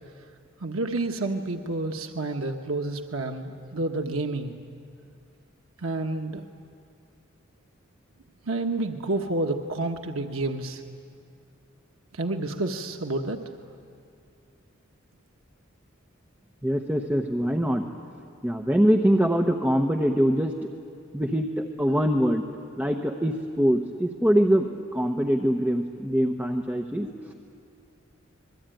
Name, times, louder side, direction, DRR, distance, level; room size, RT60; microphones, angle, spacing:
voice 1, 0.6-4.5 5.8-6.4 8.4-10.8 12.1-13.4, right 2 dB, 85° right, 4 dB, 1.3 m, -29 dB
voice 2, 16.6-17.9 18.4-20.5 21.1-22.4 22.8-24.7 24.9-27.3, equal, 10° right, 3 dB, 1.0 m, -23 dB
27.5 x 22.0 x 9.2 m, 2.4 s
head